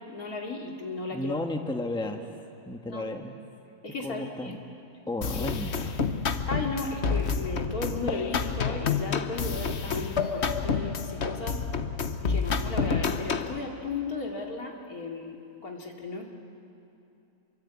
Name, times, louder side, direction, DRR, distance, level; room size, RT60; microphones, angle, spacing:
voice 1, 0.0-1.4 2.8-3.1 3.8-4.6 5.3-5.5 6.5-11.6 12.2-16.2, left 3 dB, 80° left, 0 dB, 3.2 m, -35 dB
voice 2, 1.1-2.2 2.6-3.4 4.0-4.6 5.1-5.9, left 1 dB, 5° left, 4 dB, 1.3 m, -33 dB
sound 1, 5.2-13.6, left 5 dB, 50° left, 1.2 m, -29 dB
27.5 x 23.5 x 8.5 m, 2.8 s
omnidirectional pair, 1.5 m